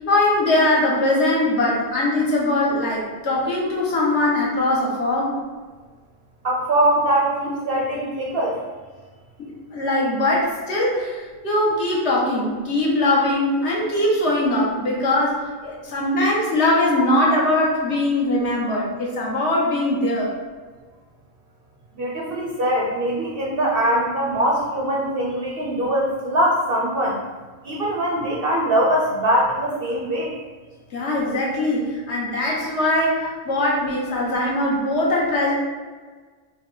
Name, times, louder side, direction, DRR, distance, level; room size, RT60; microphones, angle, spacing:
voice 1, 0.0-5.3 9.4-20.3 30.9-35.5, left 1 dB, 60° left, -4 dB, 1.2 m, -21 dB
voice 2, 6.4-8.6 22.0-27.2 27.6-30.3, right 1 dB, 60° right, -3 dB, 0.6 m, -22 dB
4.6 x 2.1 x 3.7 m, 1.4 s
omnidirectional pair, 1.4 m